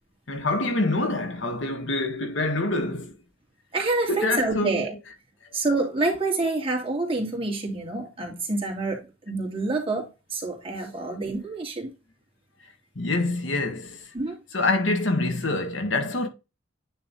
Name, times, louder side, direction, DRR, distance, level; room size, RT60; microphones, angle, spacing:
voice 1, 0.3-3.2 4.1-4.9 12.9-14.1 14.5-16.3, left 2 dB, 65° left, 1.6 m, -26 dB
voice 2, 3.7-4.9 5.5-11.9 14.1-14.4, right 3 dB, 30° right, 2.7 m, -27 dB
9.6 x 3.4 x 4.1 m
head